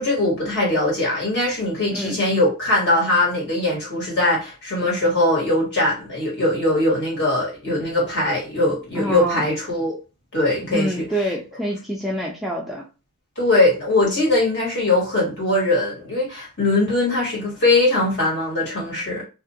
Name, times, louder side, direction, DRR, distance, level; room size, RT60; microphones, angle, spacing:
voice 1, 0.0-9.9 10.3-11.1 13.4-19.2, left 2 dB, 55° left, -4 dB, 1.5 m, -21 dB
voice 2, 9.0-9.4 10.7-12.8, equal, ahead, -2 dB, 0.3 m, -26 dB
2.5 x 2.4 x 2.7 m, 0.32 s
head